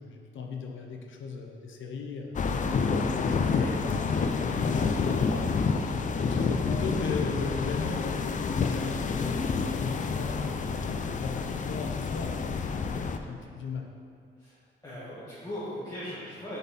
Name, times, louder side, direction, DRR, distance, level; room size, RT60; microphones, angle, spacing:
voice 1, 0.0-2.3 3.1-4.4 4.7-5.6 6.2-10.5 10.9-12.7 13.3-13.9, left 4 dB, 80° left, 2 dB, 0.7 m, -37 dB
sound 1, 2.3-13.2, left 5 dB, 40° left, 0.4 m, -28 dB
voice 2, 4.8-5.5 14.4-14.6 14.8-16.6, left 1 dB, 20° left, -10 dB, 1.6 m, -40 dB
6.9 x 4.2 x 4.1 m, 2.3 s
cardioid pair, 85°, 20 cm